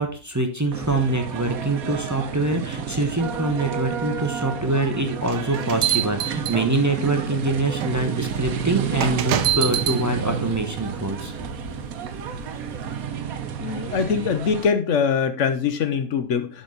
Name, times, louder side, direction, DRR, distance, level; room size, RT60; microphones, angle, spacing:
voice 1, 0.0-11.3, right 2 dB, 20° right, 4 dB, 0.5 m, -24 dB
sound 1, 0.7-14.7, right 8 dB, 70° right, 1.2 m, -31 dB
sound 2, 5.2-7.0 7.8-7.9 9.0-10.0, right 12 dB, 85° right, 1.3 m, -25 dB
Harp, 7.8-13.1, left 6 dB, 85° left, 1.8 m, -42 dB
voice 2, 13.3-16.6, left 6 dB, 60° left, 9 dB, 0.9 m, -23 dB
11.5 x 4.0 x 3.9 m, 0.38 s
omnidirectional pair, 1.7 m